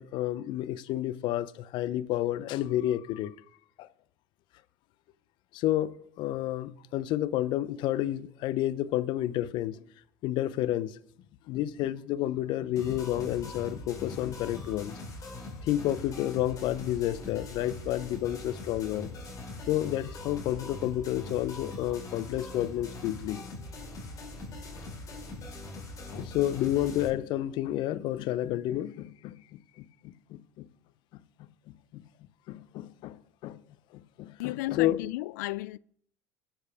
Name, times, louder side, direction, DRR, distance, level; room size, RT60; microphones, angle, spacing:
voice 1, 0.0-3.3 3.8-3.9 5.5-9.8 10.2-11.0 11.5-14.9 15.6-19.1 19.7-23.4 26.1-30.7 31.9-32.0 32.5-33.6 33.9-35.0, left 13 dB, 55° left, 0.8 m, -30 dB
sound 1, 12.8-27.1, left 2 dB, 35° left, 4.8 m, -42 dB
voice 2, 34.4-35.8, left 18 dB, 75° left, 0.4 m, -33 dB
19.0 x 7.4 x 3.6 m
hypercardioid pair, 80°, 9 cm